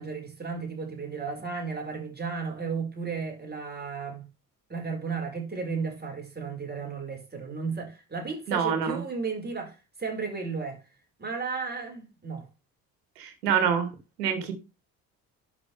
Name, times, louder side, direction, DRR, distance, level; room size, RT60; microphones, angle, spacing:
voice 1, 0.0-4.3 4.7-10.8 11.2-12.5, right 5 dB, 20° right, 5.1 m, -34 dB
voice 2, 8.5-9.0 13.2-13.9 14.2-14.5, right 7 dB, 75° right, 2.4 m, -26 dB
11.5 x 6.8 x 3.4 m
figure-of-eight pair, 50°, 48 cm